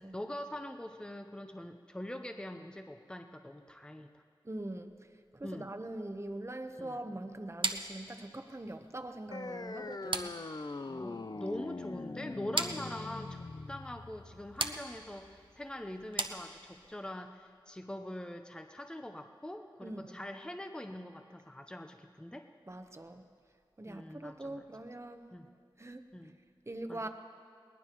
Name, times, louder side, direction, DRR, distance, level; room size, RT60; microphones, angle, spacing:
voice 1, 0.0-4.2 5.4-5.7 6.8-7.0 10.9-22.5 23.9-24.6 25.3-25.5 26.1-26.4 26.9-27.1, left 1 dB, 10° left, 6 dB, 0.7 m, -43 dB
voice 2, 4.4-4.9 5.3-10.3 19.8-20.2 22.7-23.3 23.8-25.3 25.8-26.0 26.7-27.1, right 1 dB, 30° right, 7 dB, 0.9 m, -42 dB
sound 1, 7.6-17.0, right 3 dB, 65° right, 0.8 m, -40 dB
sound 2, 9.3-16.3, left 3 dB, 50° left, 0.5 m, -43 dB
22.0 x 19.0 x 3.0 m, 2.2 s
wide cardioid pair, 45°, 9 cm